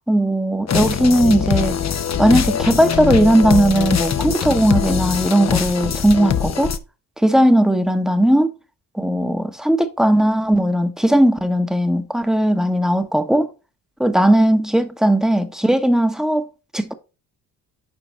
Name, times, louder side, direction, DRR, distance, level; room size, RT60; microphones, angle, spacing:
voice 1, 0.1-1.8 2.2-6.7 7.2-8.5 8.9-13.5 14.0-16.4 16.7-16.9, right 1 dB, ahead, 1.1 m, -17 dB
sound 1, 0.7-6.8, left 8 dB, 35° left, 0.8 m, -22 dB
7.4 x 5.2 x 3.2 m
supercardioid pair, 60°, 44 cm